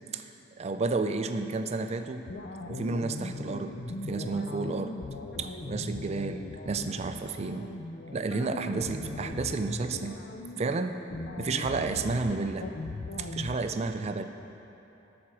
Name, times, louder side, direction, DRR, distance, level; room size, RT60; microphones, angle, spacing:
voice 1, 0.6-2.2 2.7-3.8 4.0-5.0 5.4-7.7 8.1-10.2 10.6-11.0 11.4-12.7 13.2-14.2, right 3 dB, 35° right, 8 dB, 0.4 m, -31 dB
sound 1, 2.3-13.6, left 2 dB, 55° left, 0.5 m, -39 dB
13.0 x 4.4 x 6.2 m, 3.0 s
head